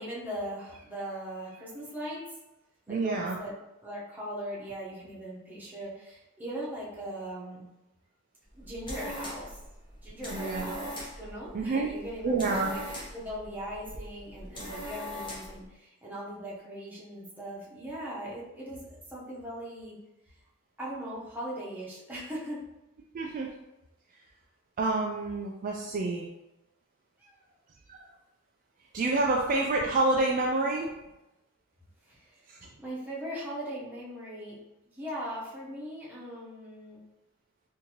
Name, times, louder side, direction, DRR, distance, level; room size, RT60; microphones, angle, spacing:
voice 1, 0.0-2.2 2.9-3.5 3.8-7.7 8.5-9.6 10.0-20.0 20.8-22.6 27.2-27.5 32.0-32.5 32.8-34.6 34.9-37.0, equal, 10° right, -7 dB, 0.9 m, -39 dB
voice 2, 2.9-3.4 10.3-10.7 11.5-11.9 12.2-12.7 23.1-23.5 24.8-26.3 27.9-28.0 28.9-30.9 32.5-32.6, right 2 dB, 40° right, -1 dB, 0.3 m, -28 dB
sound 1, 8.5-15.6, equal, 25° left, 1.0 m, -41 dB
3.8 x 2.6 x 2.9 m, 0.95 s
head